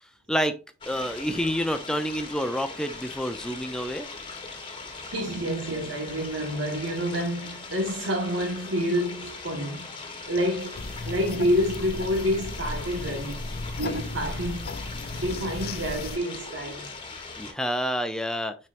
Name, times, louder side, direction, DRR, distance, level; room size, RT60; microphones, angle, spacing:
sound 1, 0.8-17.5, left 3 dB, 25° left, 1.2 m, -40 dB
voice 1, 0.9-4.1 17.4-18.6, equal, 5° left, 0.5 m, -28 dB
voice 2, 5.0-9.9 10.3-13.4 13.8-14.7 15.1-16.9, equal, 85° right, 1.5 m, -28 dB
sound 2, 10.7-16.2, left 2 dB, 50° left, 0.6 m, -35 dB
9.1 x 4.5 x 2.6 m
head